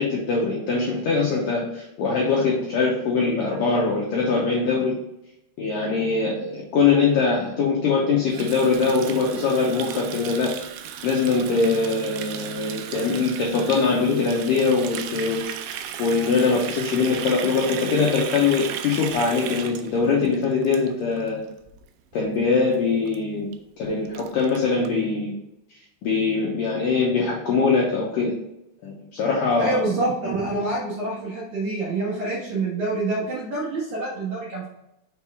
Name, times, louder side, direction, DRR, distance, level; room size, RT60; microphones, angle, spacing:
voice 1, 0.0-4.9 5.6-10.5 11.0-15.4 16.0-21.4 22.1-23.5 23.8-25.3 26.0-28.3 28.8-29.8, left 4 dB, 80° left, -3 dB, 1.9 m, -22 dB
Water tap faucet, 8.3-21.3 21.6-21.8 22.1-22.5 22.7-22.8 23.1-23.2 23.5-23.6 23.8-24.9, right 9 dB, 80° right, 2.5 m, -35 dB
voice 2, 29.6-34.7, right 2 dB, 60° right, -6 dB, 2.0 m, -26 dB
6.4 x 4.6 x 3.5 m, 0.86 s
omnidirectional pair, 5.1 m